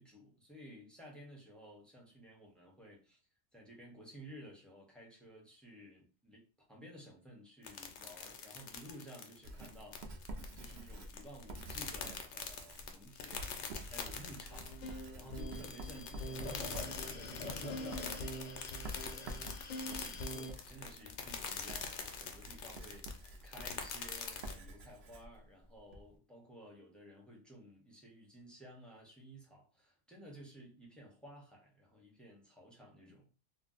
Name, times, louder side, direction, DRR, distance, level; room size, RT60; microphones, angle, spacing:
voice 1, 0.0-3.2 3.5-6.4 6.7-14.8 15.1-19.4 19.8-33.3, equal, ahead, 0.5 m, -55 dB
sound 1, 7.6-24.6, left 6 dB, 85° left, 0.9 m, -45 dB
Writing, 9.4-26.1, right 1 dB, 70° right, 0.8 m, -49 dB
sound 2, 14.5-20.5, left 1 dB, 55° left, 0.5 m, -44 dB
2.5 x 2.1 x 3.8 m
omnidirectional pair, 1.1 m